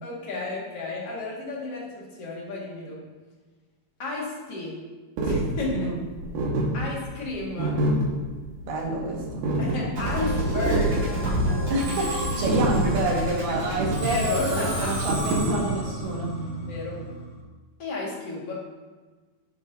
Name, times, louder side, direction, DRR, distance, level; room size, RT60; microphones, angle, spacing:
voice 1, 0.0-3.0 4.0-4.8 5.2-5.9 6.7-7.9 9.6-11.2 14.0-15.0 16.7-17.0 17.8-18.5, left 3 dB, 45° left, -4 dB, 2.5 m, -32 dB
sound 1, 5.2-16.1, right 2 dB, 60° right, 2.9 m, -27 dB
voice 2, 8.7-9.5 11.7-16.4, right 2 dB, 75° right, -3 dB, 3.7 m, -28 dB
Musical instrument, 10.0-17.3, equal, 40° right, 3.3 m, -29 dB
10.5 x 10.5 x 2.8 m, 1.3 s
omnidirectional pair, 4.5 m